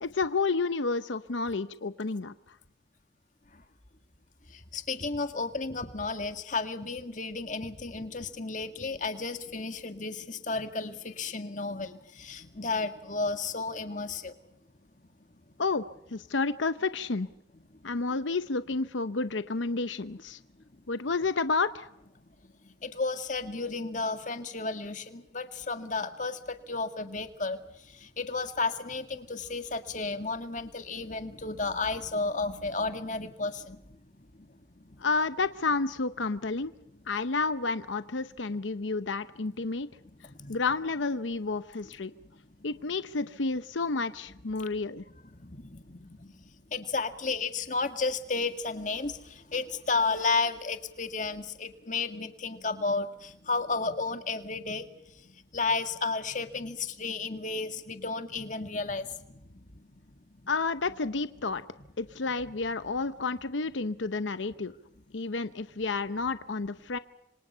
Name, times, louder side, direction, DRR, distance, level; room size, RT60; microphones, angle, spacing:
voice 1, 0.0-2.6 15.6-15.8 16.1-17.3 17.8-20.4 20.9-21.9 35.0-36.7 37.1-39.9 40.5-42.1 42.6-45.0 60.5-61.6 62.0-64.7 65.1-67.0, left 3 dB, 85° left, 12 dB, 0.8 m, -30 dB
voice 2, 4.5-14.3 17.8-17.9 22.4-34.0 34.3-34.5 34.9-35.0 40.2-40.6 42.5-42.6 44.6-44.7 45.3-60.5, left 3 dB, 40° left, 8 dB, 1.9 m, -33 dB
27.0 x 25.5 x 5.7 m, 0.85 s
head